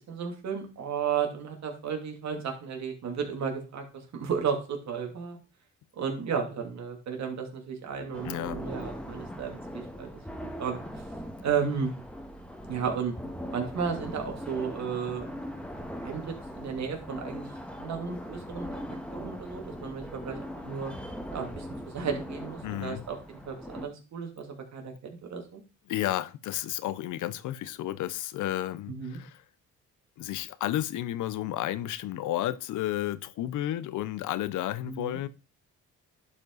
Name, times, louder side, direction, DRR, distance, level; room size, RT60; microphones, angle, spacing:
voice 1, 0.1-5.4 6.0-10.1 10.6-10.8 11.4-11.9 12.7-13.1 13.5-15.3 16.0-17.5 17.8-18.7 19.1-20.9 21.3-25.6 28.9-29.2 34.8-35.2, right 6 dB, 65° right, 2.6 m, -33 dB
sound 1, 8.1-23.9, equal, 5° left, 1.5 m, -40 dB
voice 2, 8.2-8.6 22.6-23.0 25.9-29.4 30.2-35.3, left 13 dB, 80° left, 0.7 m, -32 dB
11.0 x 5.1 x 3.9 m
cardioid pair, 90°, 30 cm